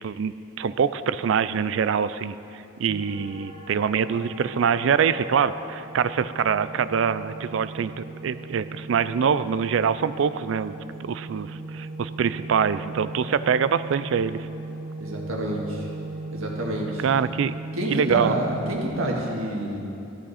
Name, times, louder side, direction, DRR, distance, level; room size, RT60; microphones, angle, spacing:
voice 1, 0.0-10.8 11.0-14.5 17.0-17.5 17.9-18.3, right 7 dB, 65° right, 14 dB, 0.3 m, -24 dB
sound 1, 2.9-18.9, right 2 dB, 30° left, 2.2 m, -38 dB
voice 2, 15.0-15.9 16.3-17.0 17.7-19.8, right 1 dB, 85° right, -1 dB, 1.7 m, -28 dB
14.0 x 8.6 x 4.2 m, 2.8 s
head